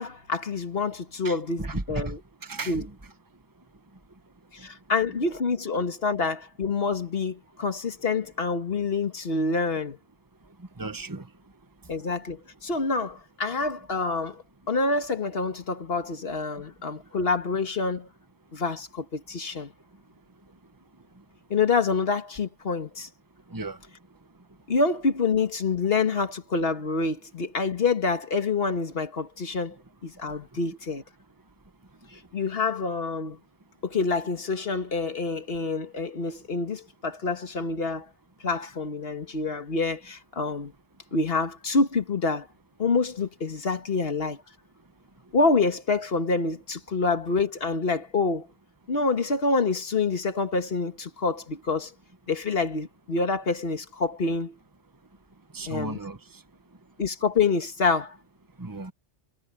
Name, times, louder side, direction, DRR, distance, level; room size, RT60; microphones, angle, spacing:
voice 1, 0.0-2.2 2.7-2.8 4.5-10.0 11.9-18.1 18.5-19.7 21.5-23.1 24.7-29.8 30.0-31.0 32.1-33.4 33.8-38.1 38.4-40.7 41.1-42.5 42.8-44.4 45.3-48.5 48.9-51.9 52.3-54.6 55.7-56.0 57.0-58.2, left 4 dB, 50° left, 1.9 m, -27 dB
voice 2, 1.2-2.1 2.4-3.1 10.8-11.3 23.5-23.8 55.5-56.2 58.6-58.9, right 2 dB, 15° right, 1.4 m, -35 dB
omnidirectional pair, 1.3 m